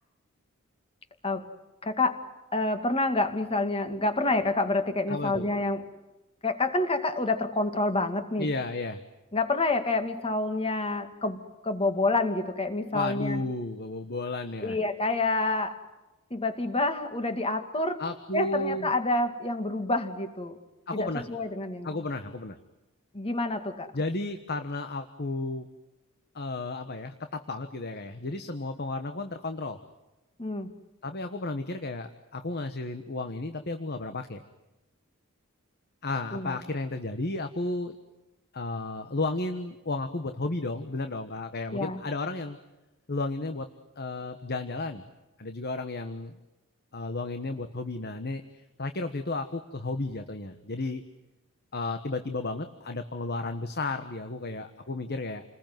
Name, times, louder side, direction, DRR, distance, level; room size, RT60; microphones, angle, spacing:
voice 1, 1.8-2.2 2.5-5.8 6.4-8.5 9.3-13.4 14.6-15.8 16.3-18.0 18.3-20.6 20.9-21.9 23.1-23.9 30.4-30.7 36.3-36.6 41.7-42.0, left 2 dB, 25° left, 8 dB, 2.3 m, -28 dB
voice 2, 5.1-5.5 8.4-9.0 12.9-14.8 18.0-18.9 20.9-21.3 21.8-22.6 23.9-25.7 26.3-29.8 31.0-34.4 36.0-37.9 38.5-42.6 43.1-43.7 44.0-45.0 45.4-46.4 46.9-48.4 48.8-51.0 51.7-55.4, left 2 dB, 50° left, 8 dB, 1.3 m, -33 dB
30.0 x 20.5 x 9.3 m, 1.1 s
head